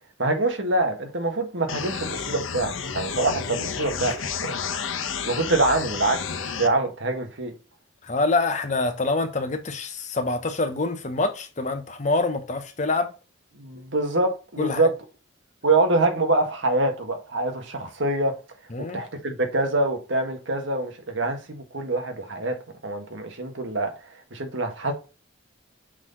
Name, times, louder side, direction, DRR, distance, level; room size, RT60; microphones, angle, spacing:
voice 1, 0.2-4.1 4.4-4.5 5.2-7.5 13.6-14.9 15.6-18.3 18.9-22.6 22.8-24.9, right 2 dB, 65° right, 1.5 m, -25 dB
sound 1, 1.7-6.7, left 6 dB, 80° left, 0.9 m, -31 dB
voice 2, 8.1-13.1 14.6-14.8 18.7-19.0, left 3 dB, 35° left, 0.8 m, -25 dB
6.2 x 4.0 x 3.8 m
head